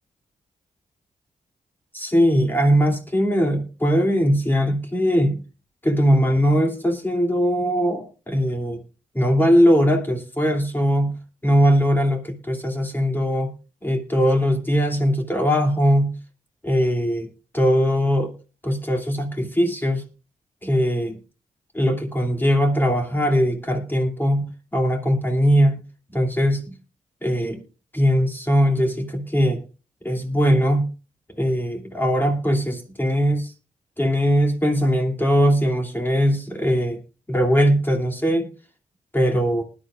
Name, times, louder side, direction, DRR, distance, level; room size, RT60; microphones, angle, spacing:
voice 1, 1.9-5.4 5.8-8.8 9.1-11.2 11.4-13.5 13.8-16.1 16.6-17.3 17.5-18.3 18.6-20.0 20.6-21.2 21.7-24.4 24.7-25.8 26.1-26.7 27.2-27.6 27.9-29.6 30.0-30.9 31.4-33.5 34.0-37.0 37.3-38.5 39.1-39.6, equal, 15° left, 2 dB, 2.8 m, -20 dB
19.5 x 11.5 x 2.4 m, 0.33 s
cardioid pair, 65°, 14 cm